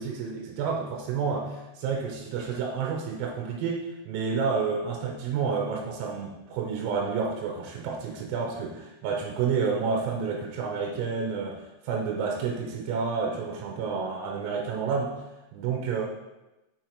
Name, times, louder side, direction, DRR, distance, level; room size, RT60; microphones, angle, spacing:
voice 1, 0.0-11.6 11.9-15.2 15.5-16.0, right 5 dB, 85° right, 0 dB, 3.5 m, -30 dB
6.5 x 6.1 x 3.0 m, 1.0 s
omnidirectional pair, 5.9 m